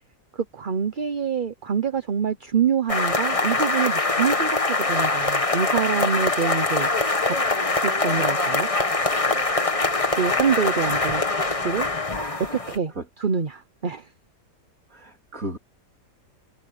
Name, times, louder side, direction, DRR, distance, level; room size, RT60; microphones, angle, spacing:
voice 1, 0.3-6.9 7.2-7.4 7.7-8.7 10.1-11.9 12.5-14.1, right 7 dB, 40° right, 0.8 m, -26 dB
sound 1, 2.9-12.8, left 3 dB, 20° left, 1.4 m, -23 dB
voice 2, 12.1-12.7 14.9-15.6, right 1 dB, 55° right, 3.8 m, -35 dB
omnidirectional pair, 1.8 m